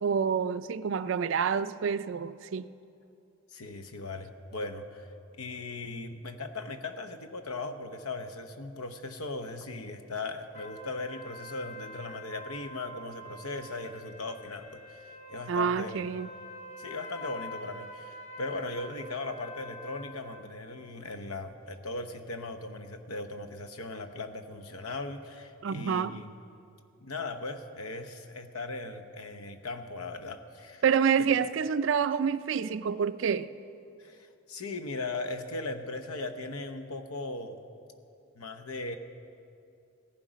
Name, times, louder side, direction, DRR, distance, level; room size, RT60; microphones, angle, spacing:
voice 1, 0.0-2.7 15.5-16.3 25.6-26.2 30.8-33.5, right 6 dB, 60° right, 0.3 m, -28 dB
voice 2, 3.5-5.1 5.4-16.0 16.8-26.3 27.0-30.8 34.0-37.6 38.3-39.0, left 2 dB, 90° left, 0.9 m, -38 dB
sound 1, 10.5-20.4, left 1 dB, 35° left, 0.9 m, -46 dB
16.5 x 11.5 x 5.1 m
head